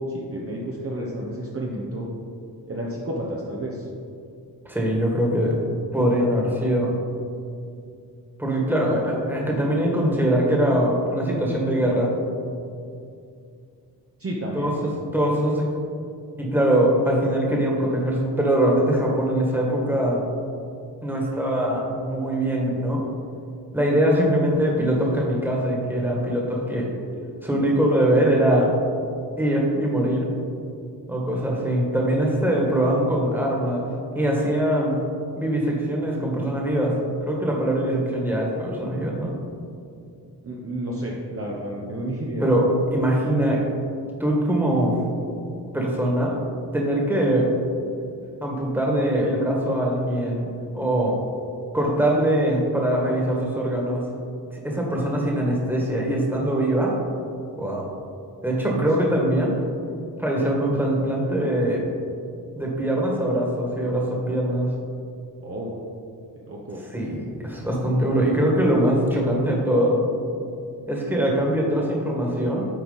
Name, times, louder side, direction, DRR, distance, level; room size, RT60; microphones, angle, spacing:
voice 1, 0.0-2.1 2.7-3.9 14.2-14.9 40.4-42.5 65.4-65.7 66.5-66.8, right 1 dB, 30° right, -3 dB, 1.0 m, -31 dB
voice 2, 4.7-5.6 5.9-6.9 8.4-12.1 14.5-14.7 15.1-15.7 16.4-20.2 21.0-23.0 23.7-26.9 27.4-28.7 29.4-30.3 31.1-33.9 34.2-35.0 35.4-37.0 37.2-39.3 42.4-43.6 44.2-45.0 45.7-46.3 46.7-47.5 48.4-50.5 50.7-51.2 51.7-54.0 54.5-56.9 57.6-57.9 58.4-59.5 60.2-61.8 62.6-64.7 66.8-70.0 70.9-72.7, right 1 dB, 5° right, -2 dB, 1.8 m, -22 dB
9.0 x 4.4 x 4.1 m, 2.5 s
cardioid pair, 75°, 43 cm